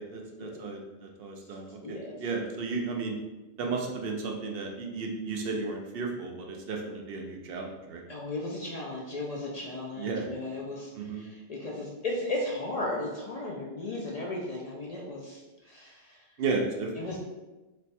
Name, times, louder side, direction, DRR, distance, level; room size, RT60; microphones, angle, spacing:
voice 1, 0.0-3.2 3.6-8.0 9.9-10.3 10.9-11.2 16.4-17.2, right 4 dB, 70° right, 1 dB, 0.8 m, -34 dB
voice 2, 1.8-2.1 8.1-10.9 11.2-15.4 15.7-16.2 17.0-17.2, left 2 dB, 50° left, -2 dB, 0.5 m, -35 dB
3.2 x 2.2 x 4.1 m, 1.1 s
omnidirectional pair, 1.0 m